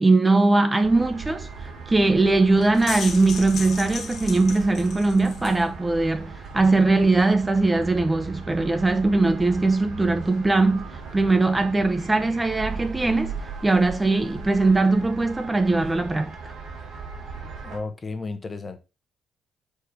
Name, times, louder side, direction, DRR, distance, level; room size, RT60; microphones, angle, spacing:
voice 1, 0.0-13.4 13.6-16.5, right 3 dB, 15° right, 0.6 m, -21 dB
sound 1, 0.8-17.8, right 4 dB, 75° right, 2.2 m, -38 dB
sound 2, 2.6-5.6, left 6 dB, 60° left, 0.9 m, -36 dB
voice 2, 17.6-18.8, left 3 dB, 30° left, 1.0 m, -33 dB
5.0 x 4.3 x 4.9 m
cardioid pair, 90°, 0 cm